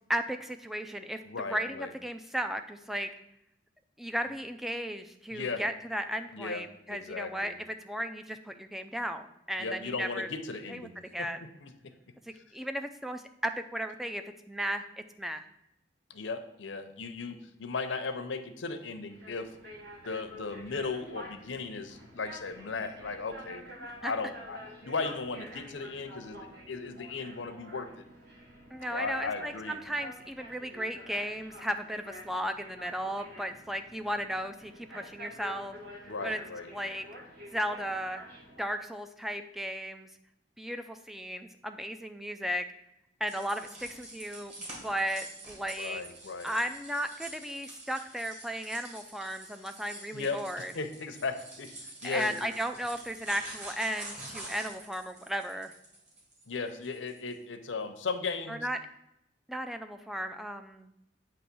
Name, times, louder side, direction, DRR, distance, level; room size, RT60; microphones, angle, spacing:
voice 1, 0.1-3.1 4.0-10.3 10.7-10.9 11.1-11.4 12.3-14.2 14.5-14.8 15.2-15.4 24.0-24.1 28.7-35.8 36.2-36.4 36.7-37.0 37.5-38.2 38.6-40.1 40.6-42.7 43.2-44.5 44.8-46.0 46.4-50.7 52.0-55.7 58.5-58.8 59.5-60.9, equal, ahead, 7 dB, 0.3 m, -35 dB
voice 2, 1.3-1.9 5.3-5.6 6.3-6.6 6.9-7.5 9.6-11.7 16.1-19.5 20.1-23.6 24.0-28.0 28.9-29.8 36.0-36.7 45.8-46.5 50.1-52.3 56.5-58.7, left 4 dB, 80° left, 8 dB, 0.7 m, -36 dB
sound 1, 19.1-38.6, equal, 55° right, 1.5 m, -48 dB
sound 2, 43.2-57.3, right 2 dB, 35° right, 2.2 m, -46 dB
8.4 x 3.1 x 6.0 m, 0.82 s
head